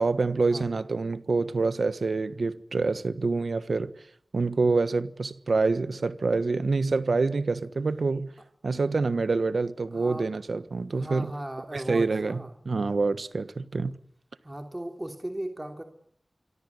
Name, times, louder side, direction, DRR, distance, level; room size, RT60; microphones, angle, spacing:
voice 1, 0.0-3.9 4.3-8.3 8.6-11.3 11.7-12.4 12.6-13.9, right 3 dB, 85° right, 1.4 m, -26 dB
voice 2, 9.9-10.3 10.9-12.5 14.4-15.8, right 1 dB, 25° right, 3.1 m, -37 dB
27.0 x 24.0 x 8.3 m
wide cardioid pair, 55°, 0 cm